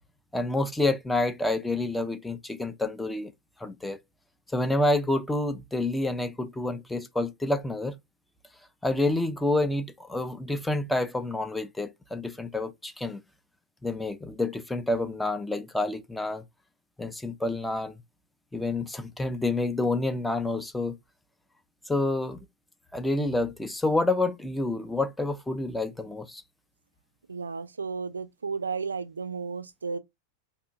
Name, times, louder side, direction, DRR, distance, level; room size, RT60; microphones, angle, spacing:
voice 1, 0.3-3.3 3.6-4.0 4.5-8.0 8.8-13.2 13.8-16.4 17.0-17.9 18.5-21.0 21.9-22.4 22.9-26.4, left 2 dB, 5° left, 0.4 m, -28 dB
voice 2, 27.3-30.0, right 5 dB, 75° right, 0.3 m, -33 dB
2.7 x 2.5 x 2.4 m
figure-of-eight pair, 90°, 0 cm